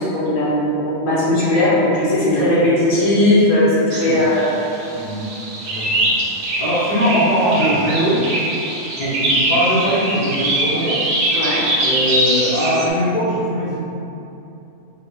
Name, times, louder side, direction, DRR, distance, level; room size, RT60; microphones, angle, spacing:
voice 1, 0.0-4.5 11.3-11.6, left 1 dB, 85° left, -9 dB, 1.5 m, -17 dB
sound 1, 3.9-12.9, right 1 dB, 90° right, 1.1 m, -22 dB
voice 2, 4.9-5.2 5.6-6.0 6.6-8.2 9.0-11.0 11.8-13.8, equal, 40° left, -12 dB, 0.9 m, -20 dB
4.3 x 2.3 x 4.0 m, 2.9 s
omnidirectional pair, 1.3 m